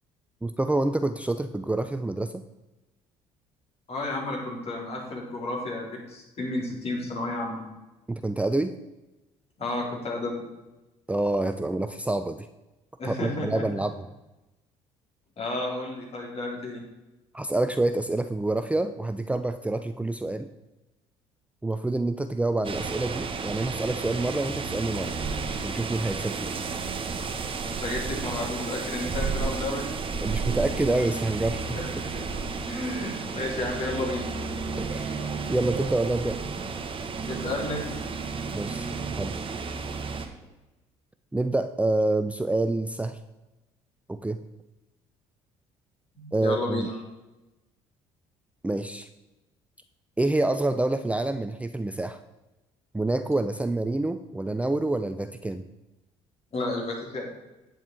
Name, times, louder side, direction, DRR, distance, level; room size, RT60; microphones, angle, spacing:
voice 1, 0.4-2.4 8.1-8.8 11.1-12.5 13.0-14.0 17.3-20.5 21.6-25.1 25.6-26.5 30.2-32.1 34.8-35.2 35.5-36.4 38.5-38.9 39.2-39.3 41.3-43.2 44.1-44.4 46.3-46.9 48.6-49.1 50.2-52.2 52.9-55.6, right 2 dB, 10° right, 9 dB, 0.5 m, -27 dB
voice 2, 3.9-7.6 9.6-10.4 13.0-13.6 15.4-16.8 27.6-29.9 31.8-34.3 37.3-38.0 46.1-47.0 56.5-57.3, left 2 dB, 45° left, -2 dB, 4.0 m, -32 dB
sound 1, 22.6-40.3, right 4 dB, 40° right, 1.4 m, -32 dB
9.2 x 7.8 x 4.8 m, 1.0 s
hypercardioid pair, 65°, 14 cm